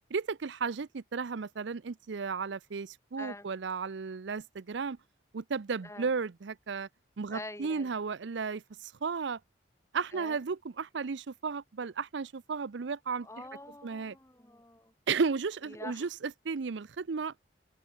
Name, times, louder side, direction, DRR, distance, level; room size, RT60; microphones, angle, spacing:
voice 1, 0.1-5.0 5.3-6.9 7.2-9.4 9.9-13.3 13.8-14.2 15.1-16.1 16.4-17.3, right 5 dB, 70° right, 0.5 m, -34 dB
voice 2, 3.2-3.5 5.8-6.1 7.3-7.9 10.1-10.4 13.2-14.9 15.6-16.1, left 2 dB, 15° left, 3.2 m, -46 dB
open air
head